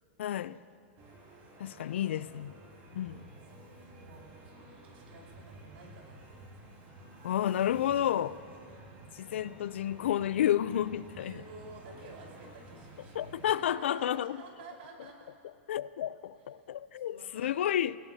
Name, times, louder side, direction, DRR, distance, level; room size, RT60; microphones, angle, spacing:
voice 1, 0.2-0.6 1.6-2.5 2.9-3.3 7.2-8.4 9.1-11.4 13.2-14.4 15.7-18.0, left 11 dB, 85° left, 0.4 m, -31 dB
sound 1, 1.0-13.5, right 2 dB, 40° right, 4.2 m, -52 dB
voice 2, 1.8-2.2 3.5-6.5 11.2-15.3 16.5-16.7 17.1-17.5, right 3 dB, 70° right, 4.4 m, -52 dB
27.5 x 17.0 x 2.8 m
supercardioid pair, 145°, 6 cm